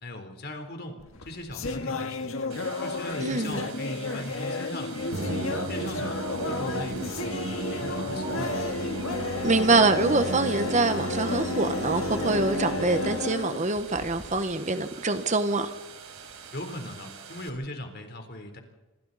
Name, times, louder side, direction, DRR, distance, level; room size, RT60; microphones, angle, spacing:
voice 1, 0.0-2.3 2.8-5.2 5.7-8.5 16.5-18.6, left 1 dB, 45° left, 5 dB, 3.8 m, -38 dB
sound 1, 1.0-14.4, left 3 dB, 65° left, 1.9 m, -33 dB
sound 2, 2.5-17.5, right 6 dB, 80° right, 4.3 m, -46 dB
voice 2, 3.2-3.7 9.4-15.7, right 3 dB, 35° right, 9 dB, 1.2 m, -25 dB
Musical instrument, 5.1-13.6, right 1 dB, 55° right, 2.6 m, -34 dB
26.5 x 25.5 x 4.2 m, 1.1 s
head